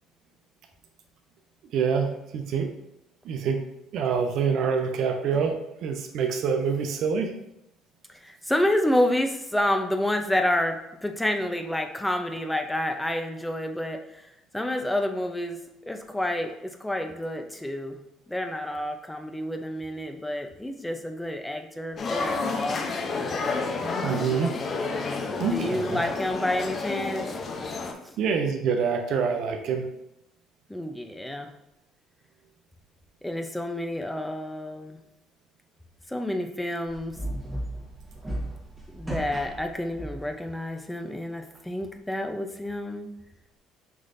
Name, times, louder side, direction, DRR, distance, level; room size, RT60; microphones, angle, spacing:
voice 1, 1.7-2.7 3.2-3.6 3.9-7.3 24.0-24.6 25.4-26.0 28.2-29.9, right 6 dB, 65° right, 3 dB, 0.7 m, -26 dB
voice 2, 8.1-14.3 14.5-15.6 15.9-18.0 18.3-22.8 25.4-27.3 28.0-28.2 30.7-31.5 33.2-35.0 36.1-37.2 38.9-43.1, left 1 dB, 5° left, 5 dB, 0.7 m, -29 dB
sound 1, 22.0-27.9, left 4 dB, 45° left, 0.6 m, -30 dB
sound 2, 36.9-40.4, right 1 dB, 15° right, 1.3 m, -35 dB
5.7 x 3.2 x 2.6 m, 0.87 s
hypercardioid pair, 65°, 0 cm